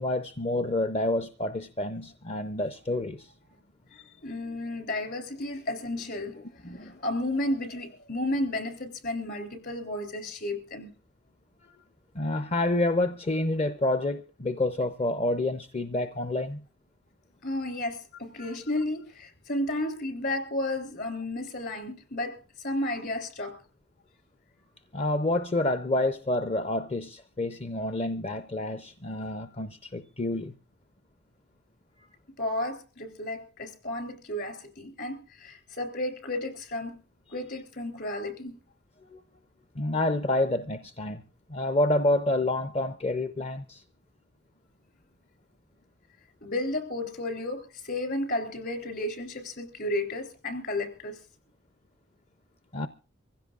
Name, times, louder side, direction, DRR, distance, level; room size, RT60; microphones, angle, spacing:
voice 1, 0.0-3.3 6.6-6.9 12.1-16.6 18.4-18.6 24.9-30.6 39.1-39.2 39.8-41.2 41.5-43.8 52.7-52.9, left 2 dB, 30° left, 0.6 m, -28 dB
voice 2, 3.9-10.9 17.4-23.5 32.4-37.0 37.3-38.6 46.4-51.2, left 1 dB, 50° left, 3.5 m, -33 dB
24.5 x 16.0 x 2.4 m
head